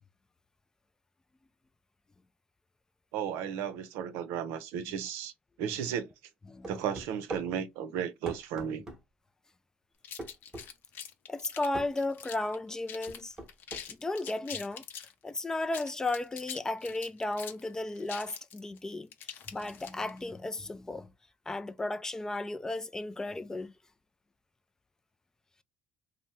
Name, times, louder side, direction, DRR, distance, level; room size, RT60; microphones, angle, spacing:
voice 1, 3.1-5.3 5.6-6.1 6.7-8.8, right 8 dB, 85° right, 0.5 m, -34 dB
voice 2, 6.5-6.8 11.3-13.4 13.9-14.8 15.2-19.1 19.5-21.1 21.5-23.7, left 2 dB, 15° left, 0.3 m, -34 dB
sound 1, 6.6-7.5 8.3-9.0 10.2-10.7 11.7-11.9 13.1-13.9, right 2 dB, 15° right, 0.9 m, -41 dB
sound 2, 10.0-12.6 12.9-13.2 13.5-15.1 15.6-20.2, left 8 dB, 50° left, 0.6 m, -44 dB
2.8 x 2.1 x 3.3 m
cardioid pair, 120°, 4 cm